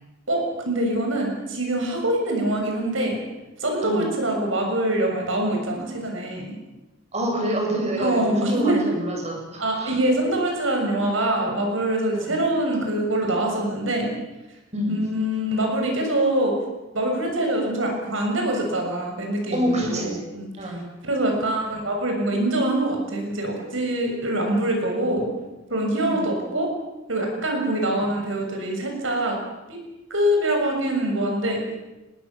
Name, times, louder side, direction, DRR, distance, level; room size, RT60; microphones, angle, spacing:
voice 1, 0.3-3.2 3.6-6.5 8.0-8.8 9.6-14.1 14.9-16.6 16.9-20.8 21.0-25.3 25.7-26.7 27.1-29.4 29.7-29.8 30.1-31.6, right 1 dB, 75° right, 2 dB, 7.0 m, -24 dB
voice 2, 7.1-9.9 12.1-12.3 14.7-15.0 19.5-20.2 20.6-20.8 26.0-26.1, equal, 35° right, 0 dB, 7.9 m, -26 dB
30.0 x 21.0 x 7.3 m, 1.0 s
head